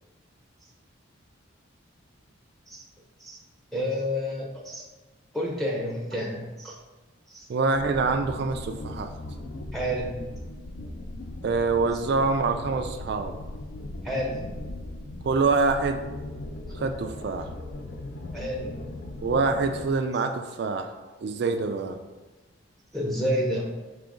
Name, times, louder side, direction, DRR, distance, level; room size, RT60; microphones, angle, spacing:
voice 1, 3.7-4.9 5.3-6.8 7.3-7.5 9.7-10.2 14.0-14.5 18.3-18.8 22.9-23.7, equal, ahead, -3 dB, 0.6 m, -30 dB
voice 2, 7.5-9.1 11.4-13.3 15.2-16.0 16.7-17.5 19.2-20.9 21.2-22.0, right 4 dB, 55° right, 5 dB, 0.3 m, -25 dB
sound 1, 7.7-19.9, left 1 dB, 60° left, 0.5 m, -38 dB
5.0 x 3.0 x 3.6 m, 1.2 s
head